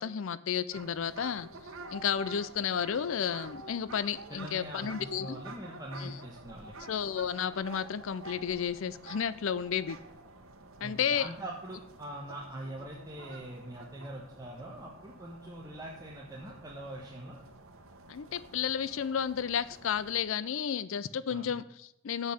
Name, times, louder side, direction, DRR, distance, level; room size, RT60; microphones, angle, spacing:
voice 1, 0.0-1.5 1.9-5.4 6.0-6.1 6.9-10.0 10.8-11.3 18.1-22.3, left 7 dB, 65° left, 16 dB, 0.4 m, -32 dB
sound 1, 0.7-20.2, right 2 dB, 70° right, 1.2 m, -49 dB
voice 2, 4.3-6.7 10.8-17.4 21.3-21.5, right 1 dB, 15° right, -4 dB, 1.3 m, -43 dB
7.5 x 6.5 x 7.8 m, 0.78 s
head